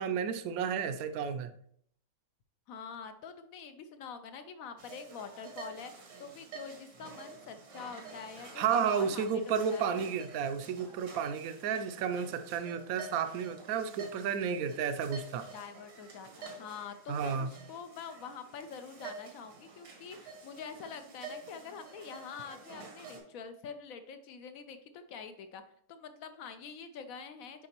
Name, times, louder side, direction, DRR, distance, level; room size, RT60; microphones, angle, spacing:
voice 1, 0.0-1.5 8.6-15.5 17.1-17.5, right 7 dB, 70° right, 10 dB, 0.9 m, -32 dB
voice 2, 2.7-10.0 15.5-25.6 25.9-27.7, left 6 dB, 70° left, 9 dB, 0.9 m, -46 dB
sound 1, 4.8-23.2, right 4 dB, 85° right, 1.8 m, -49 dB
7.5 x 4.8 x 2.9 m, 0.65 s
omnidirectional pair, 1.8 m